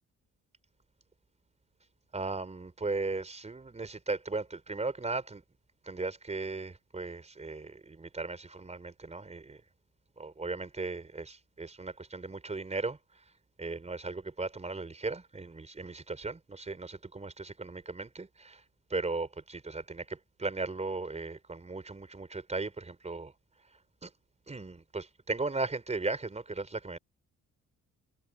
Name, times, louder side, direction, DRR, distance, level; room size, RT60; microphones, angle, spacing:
voice 1, 2.1-5.4 5.8-9.6 10.2-13.0 13.6-18.6 18.9-23.3 24.0-24.1 24.5-27.0, right 3 dB, 20° right, 4.2 m, -37 dB
cardioid pair, 90°, 30 cm